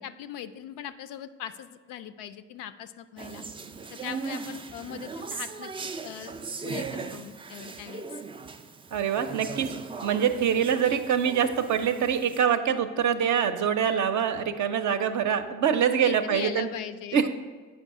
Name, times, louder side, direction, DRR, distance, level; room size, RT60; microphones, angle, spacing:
voice 1, 0.0-3.4 3.9-5.7 6.0-6.4 6.6-8.1 16.0-17.3, left 10 dB, 55° left, 11 dB, 0.5 m, -39 dB
sound 1, 3.2-12.4, right 5 dB, 15° right, 0.3 m, -39 dB
voice 2, 8.9-9.7 10.0-16.7 17.1-17.3, right 8 dB, 45° right, 8 dB, 0.6 m, -24 dB
7.9 x 5.2 x 3.6 m, 1.5 s
figure-of-eight pair, 45°, 39 cm